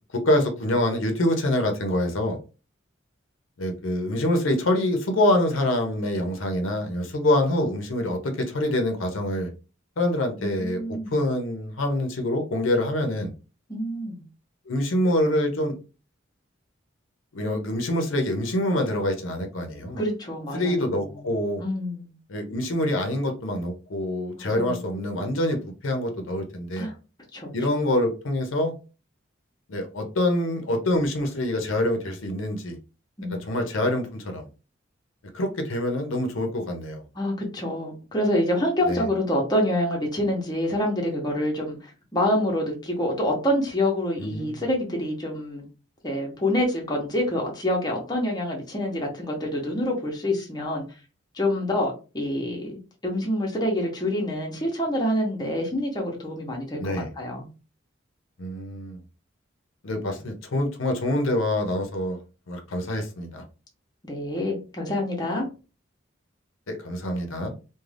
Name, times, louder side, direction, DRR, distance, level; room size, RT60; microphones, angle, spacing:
voice 1, 0.1-2.4 3.6-9.5 10.0-13.3 14.7-15.8 17.3-20.0 20.5-21.6 22.3-26.9 27.5-28.7 29.7-32.8 33.3-34.5 35.3-37.0 38.9-39.1 44.2-44.6 56.8-57.1 58.4-59.0 59.8-62.2 62.5-63.4 66.7-67.5, left 1 dB, 80° left, 5 dB, 0.6 m, -25 dB
voice 2, 10.4-11.1 13.7-14.2 20.0-20.8 21.6-22.1 24.5-24.8 26.8-26.9 27.3-27.5 33.2-33.6 37.2-45.6 46.0-50.8 51.3-52.7 53.0-57.5 64.0-65.5, left 1 dB, 20° left, -1 dB, 0.7 m, -27 dB
2.4 x 2.2 x 3.2 m, 0.32 s
head